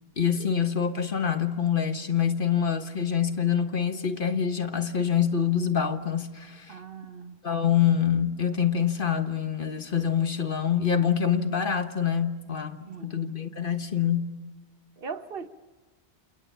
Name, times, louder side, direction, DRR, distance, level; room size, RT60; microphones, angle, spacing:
voice 1, 0.2-6.7 7.4-14.3, left 8 dB, 55° left, 1.5 m, -26 dB
voice 2, 6.7-7.4 12.8-13.1 15.0-15.5, right 5 dB, 60° right, 1.2 m, -39 dB
28.5 x 28.0 x 5.7 m
omnidirectional pair, 1.1 m